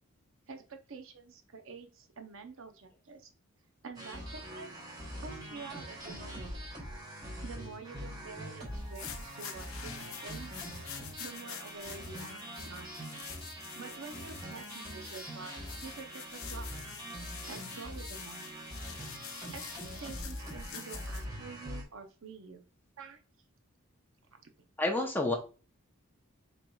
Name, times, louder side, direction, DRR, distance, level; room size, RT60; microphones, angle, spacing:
voice 1, 0.5-3.3 3.8-4.8 5.2-6.5 7.4-10.5 11.2-12.9 13.7-16.7 17.5-18.5 19.5-22.7 23.0-23.2 24.4-24.5, right 4 dB, 65° right, 6 dB, 0.7 m, -47 dB
sound 1, 3.9-21.8, equal, 20° right, 1.0 m, -43 dB
sound 2, 8.7-21.2, left 9 dB, 70° left, 0.6 m, -47 dB
voice 2, 24.8-25.4, left 2 dB, 10° left, 2 dB, 0.6 m, -29 dB
4.6 x 3.8 x 2.2 m, 0.35 s
head